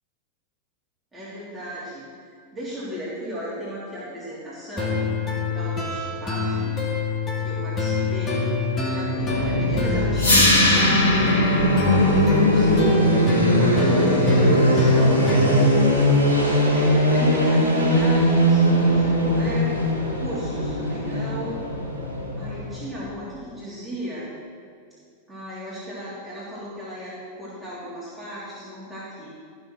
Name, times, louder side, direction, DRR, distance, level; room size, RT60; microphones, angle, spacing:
voice 1, 1.1-5.0 5.3-6.7 7.4-8.4 8.9-11.7 12.1-16.1 16.7-19.7 20.2-21.6 22.4-24.2 25.3-29.3, equal, 10° right, -9 dB, 3.3 m, -35 dB
sound 1, 4.8-15.8, left 1 dB, 25° left, 2.2 m, -26 dB
sound 2, 9.1-23.0, equal, 85° left, 3.3 m, -20 dB
sound 3, 10.2-16.2, left 1 dB, 70° left, 2.3 m, -23 dB
14.0 x 6.5 x 6.1 m, 2.2 s
figure-of-eight pair, 90°, 0 cm